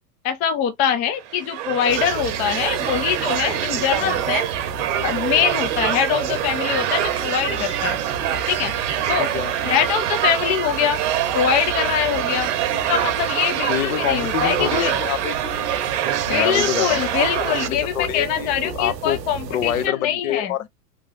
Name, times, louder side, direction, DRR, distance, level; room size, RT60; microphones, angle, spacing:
voice 1, 0.2-4.5 5.0-8.0 8.5-8.7 9.1-9.3 9.6-11.0 11.3-12.5 12.9-15.1 16.3-20.5, left 9 dB, 20° left, 0.4 m, -23 dB
sound 1, 1.2-17.7, right 11 dB, 45° right, 0.9 m, -25 dB
sound 2, 1.9-19.9, right 6 dB, 85° right, 0.7 m, -33 dB
voice 2, 9.2-9.5 13.7-15.7 16.3-19.2 19.5-20.7, left 11 dB, 55° left, 0.7 m, -27 dB
3.6 x 2.9 x 3.0 m
figure-of-eight pair, 90°, 48 cm